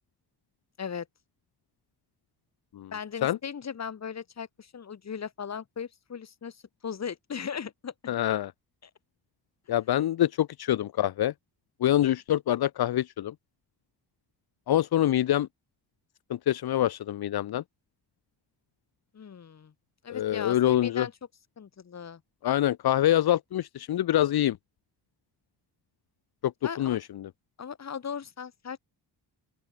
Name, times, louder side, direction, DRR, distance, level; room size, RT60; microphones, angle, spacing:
voice 1, 2.9-8.1 8.8-8.9 19.1-19.7 20.0-21.1 21.6-22.2 26.6-27.0 27.6-28.8, left 7 dB, 40° left, 3.8 m, -38 dB
voice 2, 8.1-8.5 9.7-11.3 11.8-13.3 14.7-15.5 16.3-17.6 20.1-21.1 22.4-24.6 26.4-26.5 26.8-27.3, left 12 dB, 65° left, 1.3 m, -25 dB
open air
wide cardioid pair, 160°, 41 cm